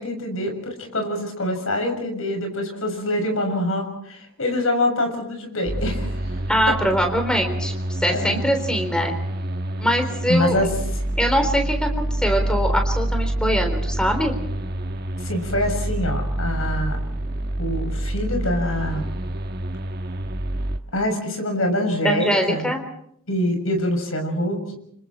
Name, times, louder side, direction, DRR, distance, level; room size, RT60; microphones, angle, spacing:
voice 1, 0.0-6.1 8.1-8.4 10.3-10.7 15.2-17.0 17.6-19.0 20.9-22.7 23.3-24.6, left 1 dB, 80° left, 4 dB, 6.9 m, -25 dB
sound 1, 5.7-20.8, right 1 dB, 45° right, 1.3 m, -27 dB
voice 2, 6.5-7.7 8.0-9.1 9.8-10.7 11.2-14.3 22.0-22.8, equal, 5° left, 5 dB, 3.8 m, -22 dB
29.5 x 26.5 x 4.4 m, 0.70 s
head